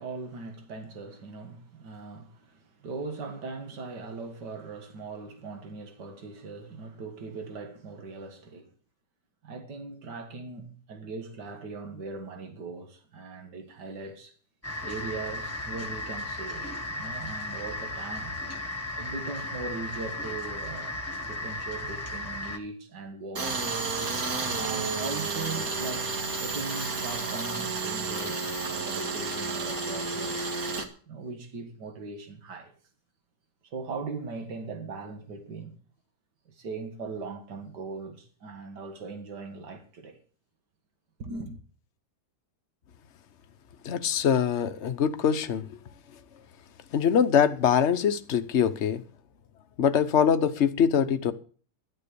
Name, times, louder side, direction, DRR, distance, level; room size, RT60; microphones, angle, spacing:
voice 1, 0.0-8.7 9.4-14.4 14.8-18.4 19.0-23.8 24.6-30.4 31.1-32.7 33.6-35.8 36.5-40.2 41.2-41.6, right 3 dB, 75° right, 2.4 m, -39 dB
sound 1, 14.6-22.6, left 2 dB, 10° left, 1.5 m, -35 dB
Tools, 23.4-30.9, right 4 dB, 60° right, 2.2 m, -31 dB
voice 2, 43.8-45.7 46.9-49.0 49.8-51.3, left 8 dB, 50° left, 1.1 m, -23 dB
12.5 x 11.0 x 6.9 m
omnidirectional pair, 1.8 m